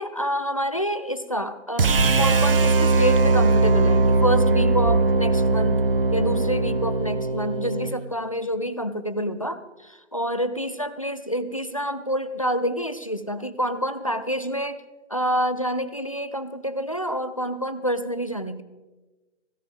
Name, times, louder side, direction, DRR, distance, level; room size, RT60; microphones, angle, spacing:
voice 1, 0.0-5.8 6.1-14.8 15.1-18.6, equal, 30° left, 13 dB, 0.4 m, -27 dB
sound 1, 1.8-7.9, right 3 dB, 50° right, 0.8 m, -20 dB
16.5 x 16.5 x 3.6 m, 1.2 s
hypercardioid pair, 170°, 36 cm